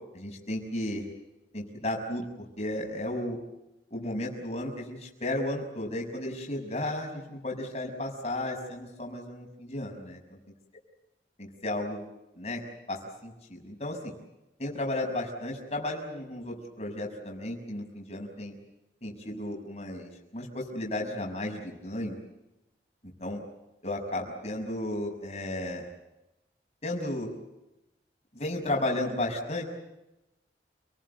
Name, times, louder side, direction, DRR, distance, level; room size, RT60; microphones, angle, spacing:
voice 1, 0.1-1.0 1.5-3.4 3.9-10.2 11.4-12.0 12.4-12.6 12.9-14.1 14.6-18.5 19.0-22.2 23.2-23.4 23.8-25.9 26.8-27.3 28.3-29.6, left 1 dB, 35° left, 0 dB, 6.2 m, -34 dB
30.0 x 19.5 x 8.1 m, 0.94 s
head